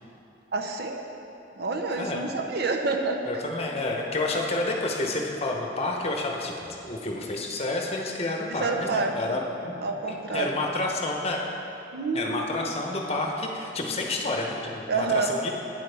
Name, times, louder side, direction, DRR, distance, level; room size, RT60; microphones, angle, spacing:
voice 1, 0.5-1.0 1.6-3.2 8.6-9.4 9.8-10.6 11.9-12.4 14.9-15.3, right 3 dB, 60° right, 3 dB, 0.7 m, -28 dB
voice 2, 3.3-9.8 10.1-11.4 12.1-15.5, left 2 dB, 35° left, 0 dB, 0.8 m, -29 dB
9.1 x 8.1 x 3.4 m, 2.8 s
head